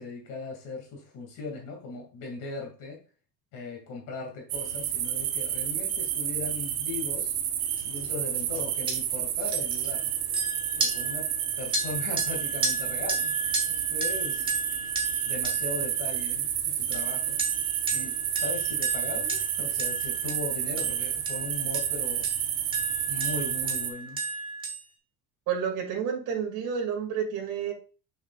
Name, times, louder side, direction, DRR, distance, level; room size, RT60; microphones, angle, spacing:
voice 1, 0.0-3.0 3.5-7.3 7.8-10.1 10.7-13.4 13.7-14.6 15.3-17.4 17.9-22.3 23.1-24.2, left 3 dB, 55° left, 0 dB, 2.6 m, -38 dB
sound 1, 4.5-23.9, right 10 dB, 80° right, 1.2 m, -30 dB
sound 2, 7.8-8.1 8.3-8.6 8.9-9.0 9.4-16.5 16.9-24.8, right 3 dB, 15° right, 1.2 m, -33 dB
voice 2, 25.5-27.7, right 7 dB, 55° right, -1 dB, 2.6 m, -30 dB
7.1 x 6.4 x 2.5 m, 0.35 s
cardioid pair, 180°, 36 cm